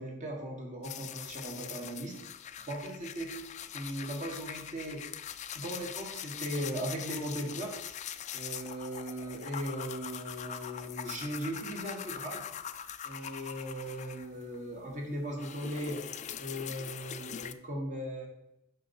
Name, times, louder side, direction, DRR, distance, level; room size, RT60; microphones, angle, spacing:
voice 1, 0.0-2.1 2.7-3.5 3.7-5.0 5.5-7.7 8.3-12.4 13.0-16.1 16.4-18.3, right 1 dB, 35° right, 1 dB, 1.6 m, -38 dB
sound 1, 0.8-14.6 14.9-17.5, left 9 dB, 35° left, 0.3 m, -42 dB
6.0 x 5.9 x 4.6 m, 0.85 s
head